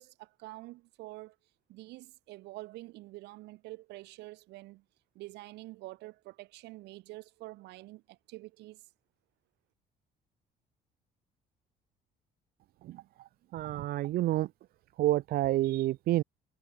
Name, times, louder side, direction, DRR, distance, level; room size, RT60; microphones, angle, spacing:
voice 1, 0.0-1.4 1.7-4.8 5.1-8.8, right 19 dB, 90° right, 6.0 m, -47 dB
voice 2, 13.5-14.5 15.0-16.2, right 15 dB, 65° right, 0.5 m, -28 dB
cardioid pair, 110°, 17 cm